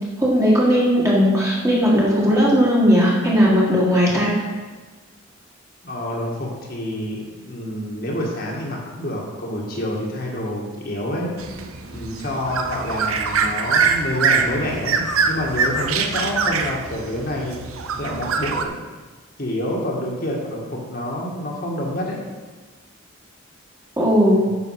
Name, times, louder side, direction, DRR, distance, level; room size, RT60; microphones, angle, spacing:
voice 1, 0.2-4.3 24.0-24.4, equal, 15° right, -5 dB, 1.9 m, -17 dB
voice 2, 5.8-11.3 11.9-17.6 18.0-18.8 19.4-22.2, left 1 dB, 45° left, -3 dB, 1.8 m, -27 dB
sound 1, 11.4-18.6, right 5 dB, 90° right, 0.7 m, -23 dB
9.9 x 6.9 x 4.9 m, 1.3 s
head